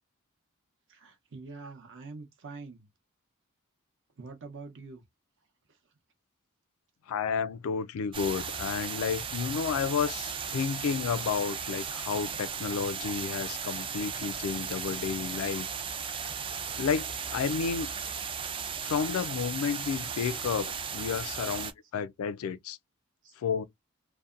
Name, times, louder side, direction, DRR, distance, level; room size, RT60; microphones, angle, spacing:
voice 1, 0.9-2.9 4.2-5.0 23.2-23.3, right 3 dB, 60° right, 0.7 m, -45 dB
voice 2, 7.1-15.7 16.2-16.3 16.7-17.9 18.8-22.8 23.4-23.6, left 6 dB, 70° left, 0.3 m, -31 dB
sound 1, 8.1-21.7, right 6 dB, 25° right, 0.3 m, -36 dB
2.6 x 2.1 x 2.4 m
head